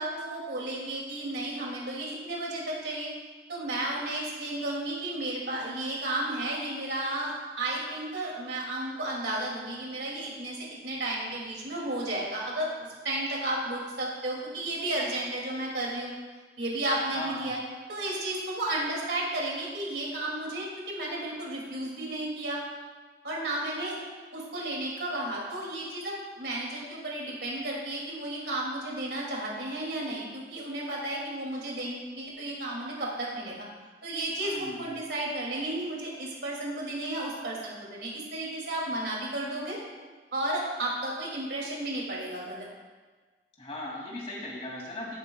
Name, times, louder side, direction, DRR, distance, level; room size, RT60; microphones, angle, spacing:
voice 1, 0.0-3.1 3.5-12.7 13.0-16.1 16.6-17.6 17.9-22.6 23.2-24.0 24.3-33.5 34.0-39.8 40.3-42.7, right 1 dB, 70° right, -3 dB, 2.8 m, -33 dB
voice 2, 17.1-17.5 34.4-34.8 43.6-45.2, left 1 dB, 35° left, -4 dB, 2.7 m, -38 dB
16.0 x 8.1 x 2.4 m, 1.4 s
head